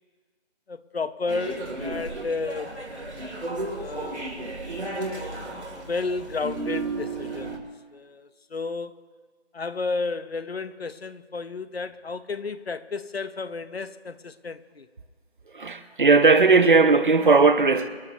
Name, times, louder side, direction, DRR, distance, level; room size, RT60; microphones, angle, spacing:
voice 1, 0.7-2.9 3.7-4.5 5.7-9.0 9.5-14.9, left 4 dB, 65° left, 0.9 m, -32 dB
sound 1, 1.3-7.6, right 2 dB, 90° right, 3.2 m, -33 dB
voice 2, 15.5-17.9, right 4 dB, 50° right, 0.9 m, -17 dB
26.0 x 12.5 x 3.0 m
figure-of-eight pair, 165°, 33 cm